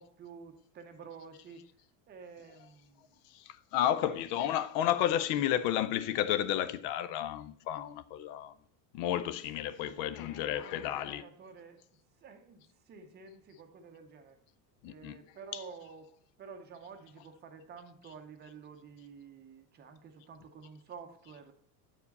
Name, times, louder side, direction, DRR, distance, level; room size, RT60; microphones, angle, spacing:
voice 1, 0.0-1.7 2.1-3.2 4.0-4.2 9.8-11.8 12.2-14.4 14.8-16.1 16.4-21.5, right 5 dB, 25° right, 0.7 m, -50 dB
voice 2, 3.3-8.5 8.9-11.2 14.8-15.2 15.5-15.6, left 11 dB, 55° left, 0.6 m, -32 dB
8.6 x 4.7 x 4.0 m
cardioid pair, 165°, 44 cm